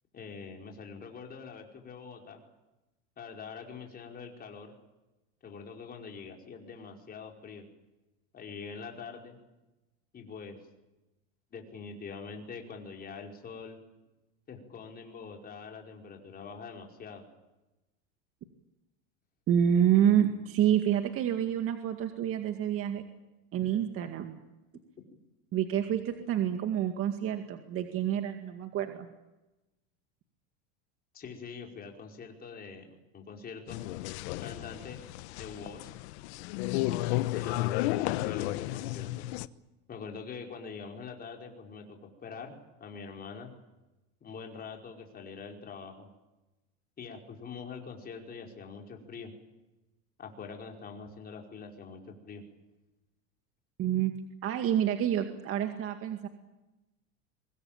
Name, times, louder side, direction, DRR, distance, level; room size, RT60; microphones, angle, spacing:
voice 1, 0.1-2.4 3.2-4.7 5.4-7.7 8.3-9.4 10.1-10.6 11.5-13.8 14.5-17.2 31.1-33.8 34.4-35.0 35.4-35.9 37.1-39.3 39.9-43.5 44.2-46.1 47.0-49.3 50.2-52.4, left 5 dB, 25° left, 2 dB, 5.1 m, -44 dB
voice 2, 19.5-23.0 23.5-24.4 25.5-29.1 53.8-54.2 54.4-56.3, right 10 dB, 40° right, 6 dB, 2.1 m, -28 dB
sound 1, 33.7-39.5, left 17 dB, 65° left, 1.1 m, -33 dB
24.0 x 20.5 x 9.0 m, 1.0 s
supercardioid pair, 130°, 35 cm